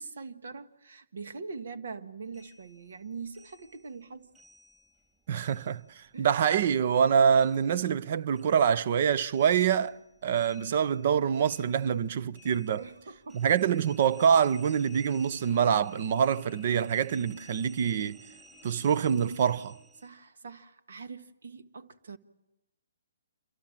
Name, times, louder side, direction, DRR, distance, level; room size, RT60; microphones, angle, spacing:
voice 1, 0.0-4.3 6.1-6.3 12.8-13.4 16.3-16.5 20.0-22.2, right 4 dB, 70° right, 1.6 m, -43 dB
sound 1, 2.3-5.1 5.3-8.1 8.3-20.1, right 1 dB, 15° right, 4.0 m, -56 dB
voice 2, 5.3-10.0 10.2-12.8 13.3-18.2 18.6-19.8, right 7 dB, 50° right, 0.9 m, -25 dB
27.5 x 24.5 x 7.5 m
hypercardioid pair, 140°, 0 cm